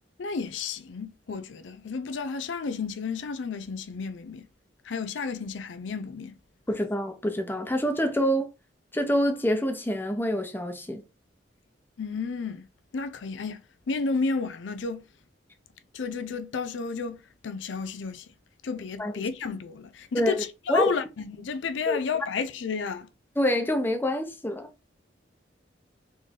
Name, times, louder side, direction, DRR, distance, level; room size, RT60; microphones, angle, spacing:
voice 1, 0.2-4.5 4.8-6.3 12.0-12.7 12.9-13.6 13.9-15.1 15.9-18.3 18.6-23.1, left 5 dB, 90° left, 0.5 m, -32 dB
voice 2, 6.7-8.5 8.9-11.0 19.0-19.1 20.1-20.4 20.7-20.9 21.9-22.0 23.4-24.7, equal, 10° left, 0.8 m, -26 dB
3.9 x 3.3 x 3.7 m
head